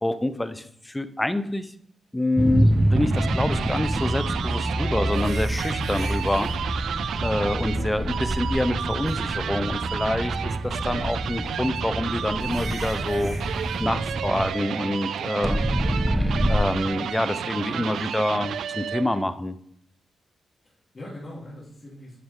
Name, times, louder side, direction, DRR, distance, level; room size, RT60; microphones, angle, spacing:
voice 1, 0.0-1.7 2.1-6.5 7.2-13.4 13.8-15.6 16.5-19.6, left 1 dB, 10° left, 11 dB, 0.7 m, -27 dB
sound 1, 2.4-14.5 15.4-16.6, right 1 dB, 5° right, 1.2 m, -26 dB
sound 2, 2.7-19.2, right 8 dB, 80° right, 0.4 m, -32 dB
sound 3, 5.1-6.6 8.2-8.8 9.1-9.2 9.8-10.3 11.7-11.8 12.4-13.8 17.9-18.1, right 2 dB, 40° right, 4.7 m, -42 dB
voice 2, 20.6-22.2, left 1 dB, 35° left, -8 dB, 3.6 m, -42 dB
10.5 x 7.7 x 3.8 m, 0.67 s
cardioid pair, 90°, 0 cm